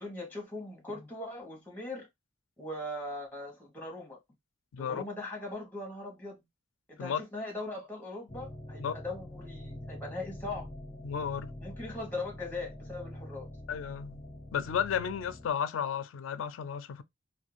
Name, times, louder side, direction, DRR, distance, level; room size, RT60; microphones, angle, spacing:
voice 1, 0.0-2.1 2.6-4.2 4.8-6.4 6.9-10.7 11.6-13.5, left 2 dB, 10° left, 1.0 m, -40 dB
voice 2, 4.7-5.0 7.0-7.2 8.8-9.0 11.0-11.5 13.7-14.2 14.5-17.0, left 7 dB, 85° left, 0.3 m, -33 dB
sound 1, 8.3-15.5, left 1 dB, 30° left, 0.6 m, -45 dB
2.5 x 2.2 x 3.0 m
head